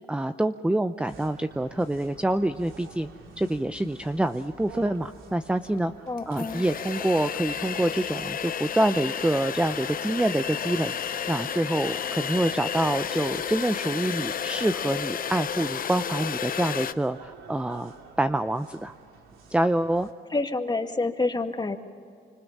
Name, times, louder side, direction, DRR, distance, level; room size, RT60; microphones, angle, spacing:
voice 1, 0.1-3.1 3.4-5.9 6.3-18.9 19.5-20.1, right 1 dB, 5° right, 10 dB, 0.6 m, -26 dB
sound 1, 1.1-20.1, right 4 dB, 85° right, 2.8 m, -50 dB
sound 2, 5.6-5.7 6.2-16.9, left 8 dB, 45° left, 0.8 m, -32 dB
voice 2, 6.1-6.6 20.3-21.8, left 3 dB, 20° left, 5 dB, 2.0 m, -28 dB
26.0 x 25.5 x 7.3 m, 2.3 s
cardioid pair, 90°, 20 cm